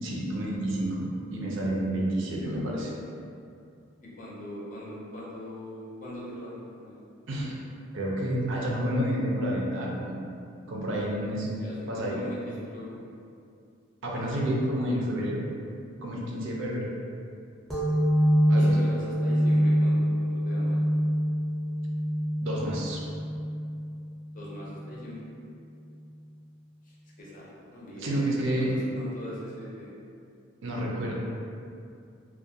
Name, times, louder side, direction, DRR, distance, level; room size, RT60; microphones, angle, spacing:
voice 1, 0.0-2.9 7.3-7.5 7.9-10.2 10.7-11.5 11.9-12.2 14.0-15.4 16.0-16.9 18.5-18.8 22.4-23.0 28.0-28.7 30.6-31.1, right 1 dB, 70° right, -3 dB, 0.5 m, -29 dB
voice 2, 2.1-2.7 4.0-7.0 11.6-13.0 18.5-20.8 24.3-25.2 26.8-28.2 28.6-29.9, left 1 dB, 40° left, -6 dB, 0.5 m, -41 dB
sound 1, 17.7-25.0, equal, ahead, 0.6 m, -25 dB
2.3 x 2.2 x 2.7 m, 2.5 s
head